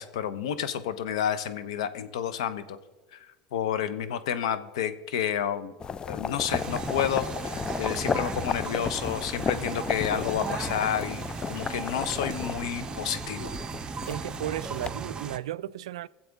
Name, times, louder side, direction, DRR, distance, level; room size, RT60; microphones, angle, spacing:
voice 1, 0.0-2.8 3.1-3.2 3.5-5.7 6.1-13.6, left 9 dB, 80° left, 0.9 m, -30 dB
sound 1, 5.8-14.9, left 6 dB, 25° left, 0.4 m, -34 dB
sound 2, 6.5-15.4, right 5 dB, 25° right, 0.7 m, -37 dB
voice 2, 14.1-16.1, right 13 dB, 80° right, 0.3 m, -34 dB
23.0 x 7.6 x 3.5 m
hypercardioid pair, 90°, 3 cm